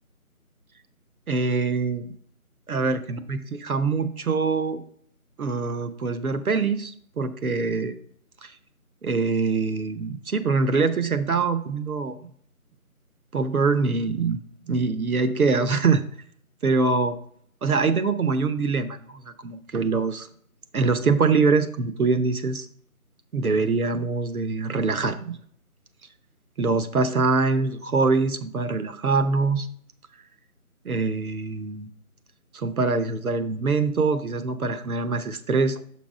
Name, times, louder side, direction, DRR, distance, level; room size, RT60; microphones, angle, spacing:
voice 1, 1.3-2.1 2.7-4.8 5.4-7.9 8.4-8.5 9.0-12.2 13.3-14.4 14.7-16.0 16.6-17.2 17.6-20.3 20.7-22.7 23.3-25.4 26.6-29.7 30.8-31.9 32.5-35.8, right 4 dB, 75° right, 10 dB, 0.8 m, -24 dB
6.0 x 5.7 x 3.5 m, 0.63 s
figure-of-eight pair, 175°, 44 cm